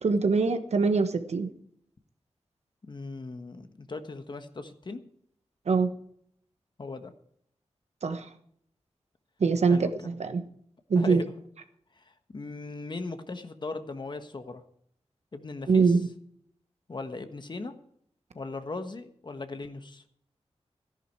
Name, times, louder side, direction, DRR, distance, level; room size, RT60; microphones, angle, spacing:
voice 1, 0.0-1.5 5.7-5.9 8.0-8.3 9.4-10.4 10.9-11.2 15.7-16.0, right 4 dB, 80° right, 8 dB, 1.2 m, -23 dB
voice 2, 2.9-5.0 6.8-7.1 9.7-9.9 10.9-11.3 12.0-12.1 12.3-14.6 15.3-16.0 16.9-17.7 18.3-20.0, left 3 dB, 45° left, 8 dB, 1.3 m, -38 dB
14.0 x 11.0 x 4.7 m, 0.67 s
wide cardioid pair, 110°, 11 cm